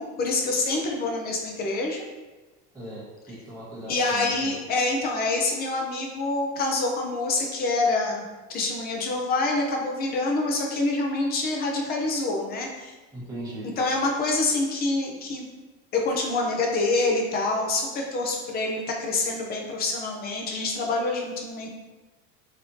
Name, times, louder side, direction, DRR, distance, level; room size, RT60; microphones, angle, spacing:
voice 1, 0.0-2.0 3.9-12.9 13.8-15.5 15.9-21.7, left 2 dB, 30° left, 1 dB, 0.6 m, -26 dB
voice 2, 2.7-4.5 13.1-13.7, right 1 dB, 10° right, -8 dB, 1.1 m, -38 dB
3.2 x 2.9 x 2.7 m, 1.2 s
supercardioid pair, 140°, 31 cm